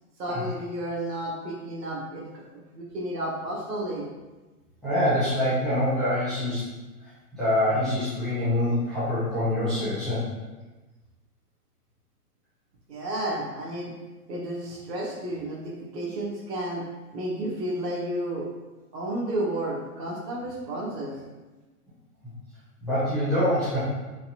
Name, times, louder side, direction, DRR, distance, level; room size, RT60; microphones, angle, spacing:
voice 1, 0.2-2.2 2.7-4.1 12.9-13.9 14.3-16.8 17.1-18.5 18.9-21.2, right 1 dB, 85° right, -4 dB, 1.5 m, -31 dB
voice 2, 4.8-6.6 7.0-10.3 22.8-23.9, left 1 dB, ahead, -18 dB, 0.6 m, -25 dB
4.0 x 2.5 x 2.9 m, 1.2 s
hypercardioid pair, 160°, 48 cm